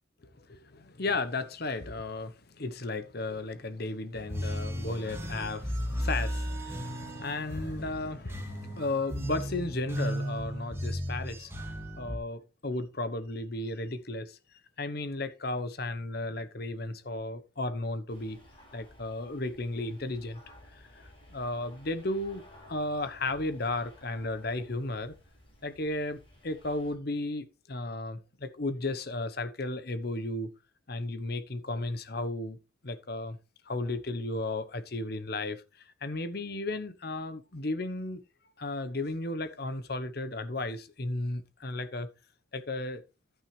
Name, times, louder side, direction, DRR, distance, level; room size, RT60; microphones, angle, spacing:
voice 1, 0.4-14.4 14.8-18.4 18.7-20.4 20.7-22.4 22.7-25.1 25.6-30.5 30.9-32.6 32.8-33.4 33.7-38.2 38.6-42.1 42.5-43.0, left 2 dB, 50° left, 1.0 m, -34 dB
sound 1, 4.1-12.2, equal, 15° right, 2.1 m, -35 dB
sound 2, 18.1-26.9, left 1 dB, 25° left, 8.0 m, -56 dB
11.5 x 9.2 x 3.3 m
head